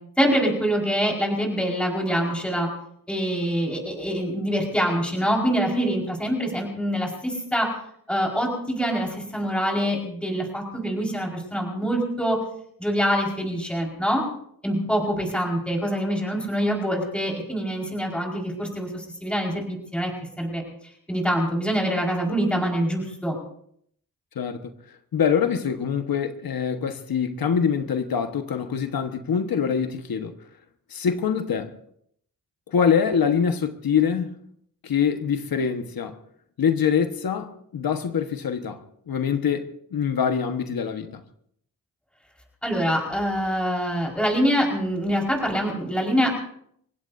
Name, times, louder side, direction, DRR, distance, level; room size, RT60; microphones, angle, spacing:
voice 1, 0.2-2.7 3.1-7.7 8.1-12.4 12.8-14.2 14.6-20.1 20.4-20.6 21.1-23.4 42.6-46.3, equal, 5° left, 4.9 m, -25 dB
voice 2, 24.3-24.7 25.1-30.4 30.9-31.7 32.7-34.4 34.8-36.2 36.6-41.2, left 7 dB, 75° left, 1.4 m, -24 dB
30.0 x 16.5 x 2.7 m
wide cardioid pair, 95°, 36 cm